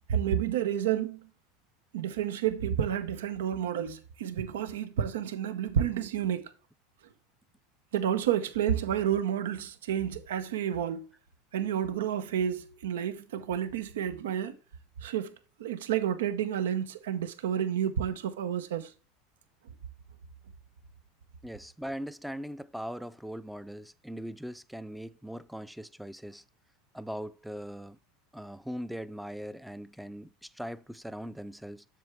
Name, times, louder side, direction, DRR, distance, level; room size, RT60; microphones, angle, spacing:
voice 1, 0.1-1.3 1.9-6.5 7.9-11.0 11.5-14.6 15.0-15.3 15.6-18.9, right 9 dB, 85° right, 0.8 m, -30 dB
voice 2, 21.4-26.4 26.9-28.0 28.3-31.8, equal, ahead, 0.4 m, -40 dB
7.7 x 6.9 x 3.4 m
supercardioid pair, 110°, 0 cm